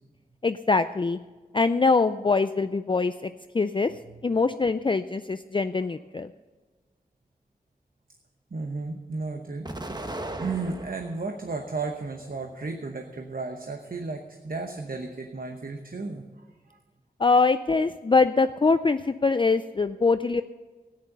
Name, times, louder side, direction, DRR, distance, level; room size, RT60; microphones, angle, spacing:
voice 1, 0.4-1.2 1.5-3.9 4.2-6.3 17.2-20.4, left 4 dB, 30° left, 10 dB, 0.4 m, -23 dB
voice 2, 8.5-16.8, right 3 dB, 65° right, 4 dB, 1.0 m, -34 dB
Explosion, 9.6-11.3 11.8-12.7, right 1 dB, 25° right, 1.0 m, -37 dB
13.5 x 9.6 x 6.7 m, 1.3 s
wide cardioid pair, 65°, 16 cm